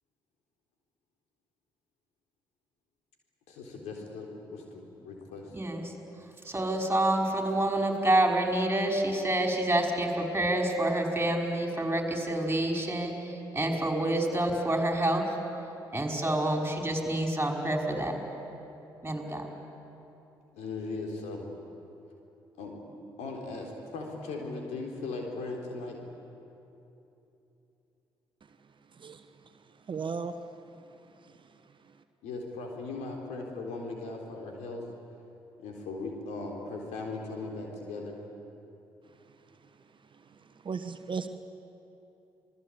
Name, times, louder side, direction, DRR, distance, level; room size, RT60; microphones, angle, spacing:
voice 1, 3.5-5.6 20.5-21.5 22.6-22.8 23.2-26.0 32.2-34.8 35.6-38.2, left 3 dB, 75° left, 1 dB, 3.8 m, -38 dB
voice 2, 5.5-5.9 6.4-15.3 15.9-18.2 19.0-19.5, right 1 dB, 20° right, 2 dB, 5.5 m, -28 dB
voice 3, 29.9-30.3 40.6-41.3, right 5 dB, 45° right, 9 dB, 1.2 m, -34 dB
27.5 x 20.5 x 8.6 m, 2.9 s
hypercardioid pair, 45°, 12 cm